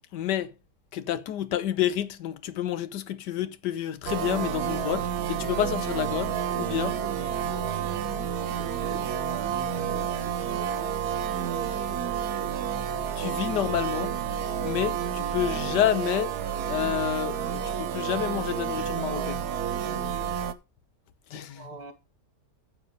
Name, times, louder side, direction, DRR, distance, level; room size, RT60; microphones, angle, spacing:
voice 1, 0.1-0.5 0.9-7.0 13.2-14.1 14.6-16.4 16.7-19.4 21.3-21.8, left 11 dB, 80° left, 1.4 m, -29 dB
sound 1, 4.1-20.5, right 8 dB, 70° right, 1.3 m, -30 dB
voice 2, 8.6-9.1 9.5-10.1 21.3-21.9, right 4 dB, 85° right, 2.2 m, -44 dB
9.4 x 7.3 x 5.3 m
omnidirectional pair, 1.8 m